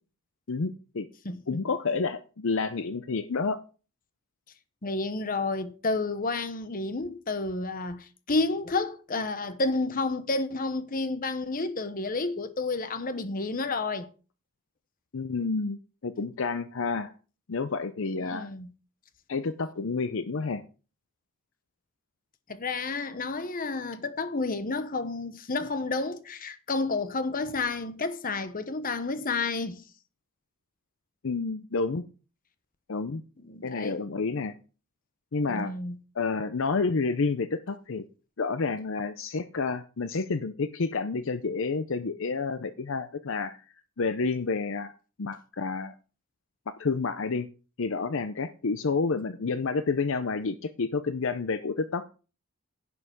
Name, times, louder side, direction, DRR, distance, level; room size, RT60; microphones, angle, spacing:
voice 1, 0.5-1.1 1.5-3.6 15.1-17.1 17.5-18.5 19.3-20.6 31.2-32.0 32.9-33.2 33.6-34.5 35.3-35.7 36.2-38.0 38.4-43.6 44.0-44.9 45.2-45.9 46.7-47.5 47.8-52.0, left 4 dB, 60° left, 0.6 m, -29 dB
voice 2, 1.2-1.6 4.8-14.1 18.2-18.7 22.5-29.8 33.4-34.0 35.5-36.0, left 3 dB, 40° left, 1.0 m, -30 dB
11.0 x 5.6 x 6.4 m
head